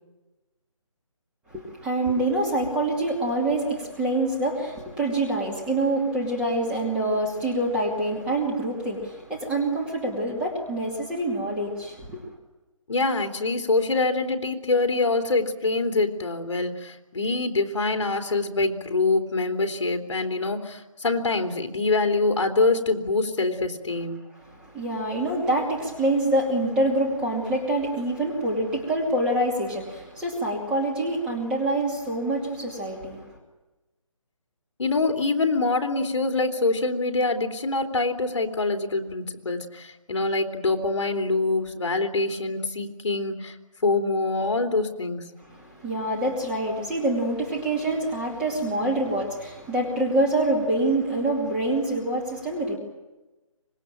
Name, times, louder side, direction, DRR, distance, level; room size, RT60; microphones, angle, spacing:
voice 1, 1.5-12.2 24.5-33.3 45.5-52.8, right 1 dB, 5° right, -2 dB, 2.5 m, -26 dB
voice 2, 12.9-24.2 34.8-43.5 43.8-45.2, left 3 dB, 60° left, 5 dB, 3.2 m, -25 dB
25.5 x 22.0 x 9.0 m, 1.1 s
hypercardioid pair, 175°, 17 cm